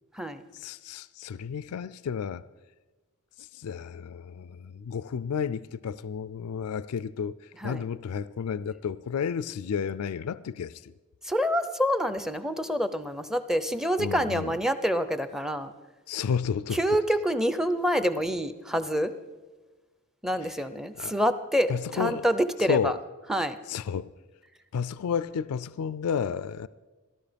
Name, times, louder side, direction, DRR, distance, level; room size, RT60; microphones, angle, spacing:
voice 1, 0.5-2.4 3.4-7.4 7.6-10.9 14.0-14.5 16.1-16.8 21.0-21.1 21.7-22.2 22.7-23.0 23.7-24.1 24.7-26.7, left 7 dB, 75° left, 0.4 m, -31 dB
voice 2, 11.2-15.7 16.7-19.1 20.2-23.0 23.3-23.6, equal, ahead, 0.6 m, -27 dB
15.5 x 12.5 x 5.1 m
head